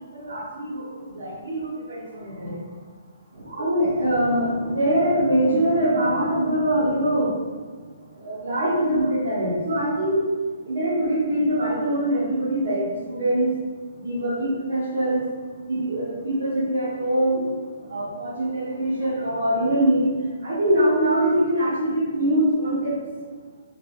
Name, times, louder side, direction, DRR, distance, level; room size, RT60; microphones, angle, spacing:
voice 1, 0.1-2.5 3.4-7.4 8.2-10.2 10.7-13.5 14.0-15.2 15.7-17.5 17.9-20.1 20.4-22.9, right 1 dB, 60° right, -9 dB, 1.1 m, -23 dB
3.2 x 3.1 x 2.5 m, 1.5 s
figure-of-eight pair, 125°, 0 cm